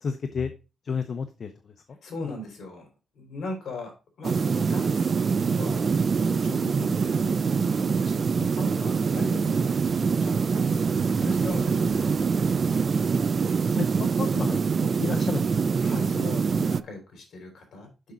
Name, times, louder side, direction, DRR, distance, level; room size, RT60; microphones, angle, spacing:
voice 1, 0.0-0.5 0.8-1.5 13.7-15.7, left 5 dB, 50° left, 8 dB, 0.7 m, -31 dB
voice 2, 2.0-2.9 3.1-5.8 6.3-12.9 15.8-18.1, left 2 dB, 70° left, 3 dB, 3.2 m, -39 dB
sound 1, 4.2-16.8, right 5 dB, 45° right, 0.3 m, -24 dB
sound 2, 5.7-13.8, equal, 5° right, 2.4 m, -45 dB
6.3 x 6.1 x 4.0 m, 0.30 s
cardioid pair, 110°, 0 cm